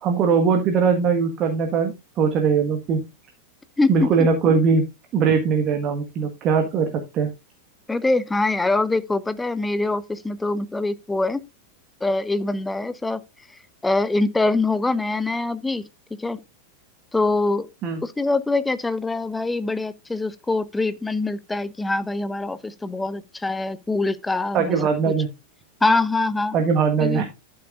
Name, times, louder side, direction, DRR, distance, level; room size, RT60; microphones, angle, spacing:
voice 1, 0.0-3.0 3.9-4.8 5.1-7.3 17.8-18.0 24.5-25.3 26.5-27.3, right 5 dB, 35° right, 1.5 m, -20 dB
voice 2, 3.8-4.3 7.9-11.4 12.0-13.2 13.8-15.8 16.2-16.4 17.1-17.7 18.0-24.8 25.1-25.2 25.8-26.6 27.0-27.3, left 2 dB, 10° left, 0.7 m, -24 dB
12.0 x 7.7 x 2.5 m
figure-of-eight pair, 90°, 0 cm